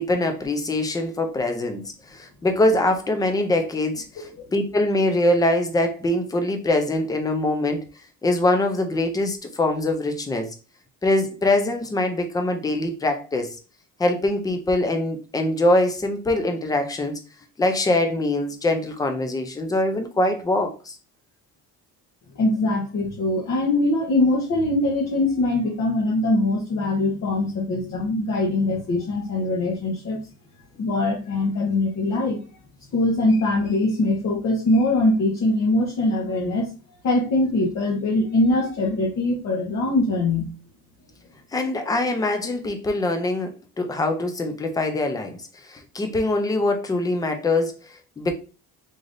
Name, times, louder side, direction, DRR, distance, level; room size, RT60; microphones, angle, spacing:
voice 1, 0.0-7.8 8.2-10.5 11.0-13.6 14.0-17.2 17.6-21.0 41.5-48.3, left 2 dB, 10° left, 0.3 m, -23 dB
voice 2, 22.4-30.2 30.8-32.4 32.9-36.7 37.0-40.5, left 2 dB, 45° left, 0.9 m, -22 dB
3.8 x 3.3 x 2.5 m
cardioid pair, 165°, 39 cm